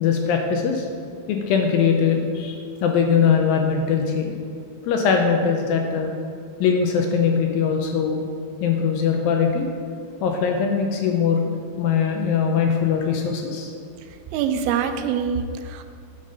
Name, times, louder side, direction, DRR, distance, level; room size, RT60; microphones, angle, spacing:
voice 1, 0.0-0.9 1.3-2.6 2.8-4.4 4.8-6.1 6.6-8.2 8.6-9.7 10.2-11.5 11.8-13.7 15.6-15.7, left 6 dB, 80° left, 2 dB, 2.2 m, -21 dB
voice 2, 14.3-15.8, right 7 dB, 80° right, 8 dB, 2.4 m, -24 dB
9.4 x 5.1 x 5.3 m, 2.2 s
omnidirectional pair, 4.4 m